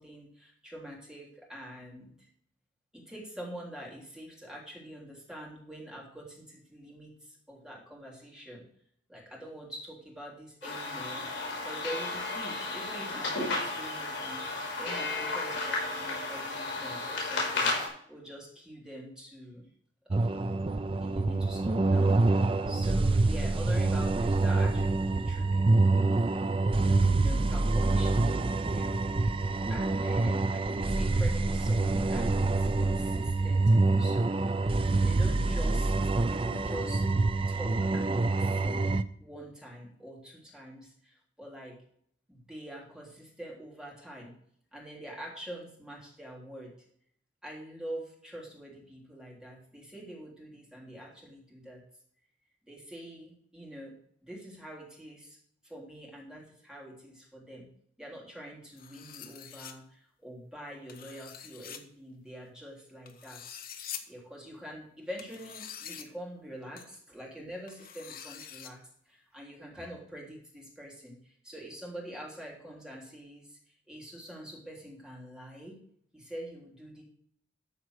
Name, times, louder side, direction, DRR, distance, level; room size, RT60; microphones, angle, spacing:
voice 1, 0.0-2.1 2.9-8.6 9.1-11.3 11.6-17.7 18.1-19.7 20.0-20.5 21.0-26.0 27.1-29.0 29.7-34.3 35.0-35.9 36.3-37.0 37.5-38.9 39.2-41.8 42.3-44.3 44.7-46.7 47.4-51.8 52.7-53.9 54.2-55.4 55.6-57.7 58.0-63.4 64.1-68.8 69.0-75.8 76.1-77.0, equal, 5° right, -3 dB, 3.4 m, -45 dB
sound 1, 10.6-17.9, left 3 dB, 70° left, 5.1 m, -33 dB
sound 2, 20.1-39.0, right 2 dB, 30° right, 0.4 m, -26 dB
sound 3, 58.8-59.7 60.9-61.8 63.1-64.0 65.2-66.0 66.8-66.9 67.7-68.7, left 9 dB, 55° left, 1.1 m, -45 dB
13.5 x 5.0 x 6.4 m, 0.64 s
head